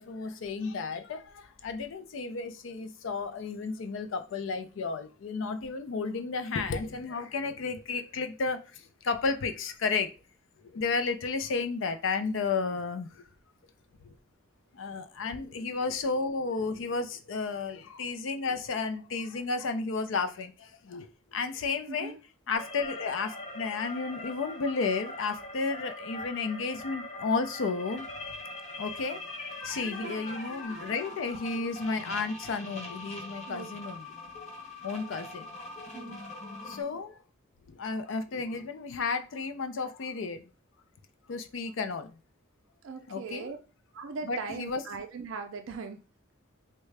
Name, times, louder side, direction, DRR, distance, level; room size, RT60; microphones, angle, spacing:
voice 1, 0.0-10.1 10.6-13.2 14.0-14.2 14.7-22.1 22.5-28.1 28.8-29.2 29.6-34.1 34.8-35.5 36.7-37.2 37.7-40.4 41.3-42.2 43.1-43.5 44.3-44.8, left 4 dB, 70° left, 0.4 m, -32 dB
voice 2, 21.9-22.2 30.0-30.1 33.5-33.7 35.9-36.2 42.8-43.6 43.9-46.0, right 4 dB, 70° right, 0.4 m, -39 dB
sound 1, 22.5-36.8, left 2 dB, 30° left, 0.8 m, -42 dB
3.6 x 2.1 x 3.2 m
head